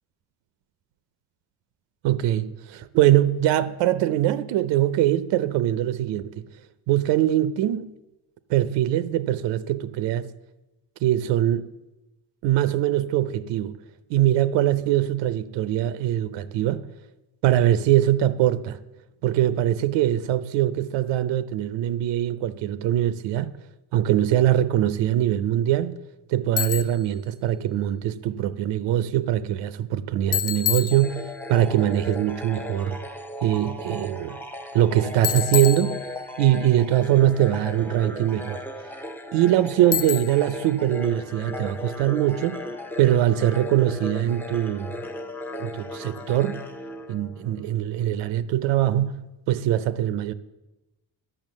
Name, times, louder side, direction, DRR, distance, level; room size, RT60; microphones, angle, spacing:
voice 1, 2.0-6.4 6.9-7.9 8.5-10.3 11.0-11.7 12.4-13.7 14.1-16.9 17.4-18.8 19.2-23.5 23.9-26.0 26.3-33.0 33.4-34.4 34.7-36.0 36.4-38.6 39.3-42.6 43.0-45.0 45.6-46.6 47.1-50.3, right 12 dB, 90° right, 0.6 m, -22 dB
Bicycle, 26.6-27.1 30.3-31.5 35.2-36.5 39.9-40.6, left 12 dB, 50° left, 0.6 m, -28 dB
sound 1, 30.9-47.7, left 1 dB, 5° left, 0.5 m, -36 dB
11.0 x 5.8 x 7.4 m
cardioid pair, 135°, 42 cm